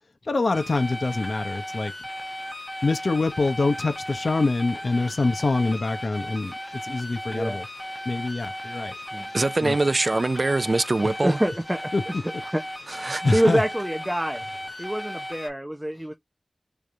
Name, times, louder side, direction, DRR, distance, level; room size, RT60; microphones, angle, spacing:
voice 1, 0.3-1.9 2.8-6.5 6.8-7.7 8.1-8.9 9.6-9.8 11.9-12.0 13.2-13.6, left 3 dB, 70° left, 0.8 m, -25 dB
sound 1, 0.5-15.5, equal, 20° left, 1.3 m, -36 dB
voice 2, 7.3-7.6 9.1-9.3 11.2-12.2 12.5-12.6 13.3-14.4 14.8-16.1, equal, 10° right, 0.8 m, -26 dB
voice 3, 9.3-11.4 12.9-13.5, right 2 dB, 50° right, 0.4 m, -23 dB
4.6 x 3.4 x 2.7 m
wide cardioid pair, 75°, 0 cm